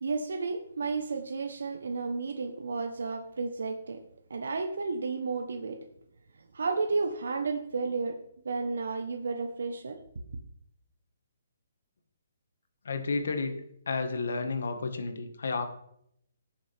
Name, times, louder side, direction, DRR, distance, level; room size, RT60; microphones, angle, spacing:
voice 1, 0.0-4.0 4.3-5.8 6.5-8.2 8.4-10.0, right 4 dB, 80° right, 5 dB, 1.2 m, -32 dB
voice 2, 12.9-15.7, left 4 dB, 70° left, 7 dB, 1.7 m, -32 dB
17.0 x 7.0 x 3.6 m, 0.73 s
hypercardioid pair, 175°, 0 cm